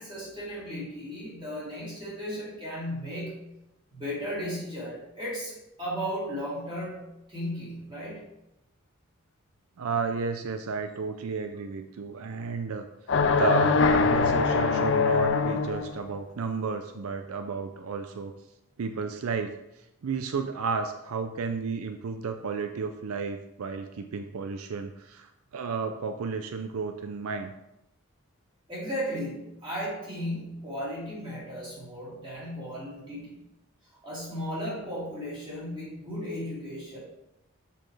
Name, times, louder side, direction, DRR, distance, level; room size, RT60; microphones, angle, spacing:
voice 1, 0.0-3.4 3.9-8.2 28.7-33.3 34.0-37.0, equal, 20° right, -7 dB, 2.7 m, -35 dB
voice 2, 9.8-12.9 13.4-18.3 18.8-19.6 20.0-27.5, right 4 dB, 75° right, 7 dB, 0.4 m, -32 dB
sound 1, 13.1-16.0, left 4 dB, 55° left, 0.5 m, -23 dB
6.7 x 6.1 x 3.3 m, 0.89 s
head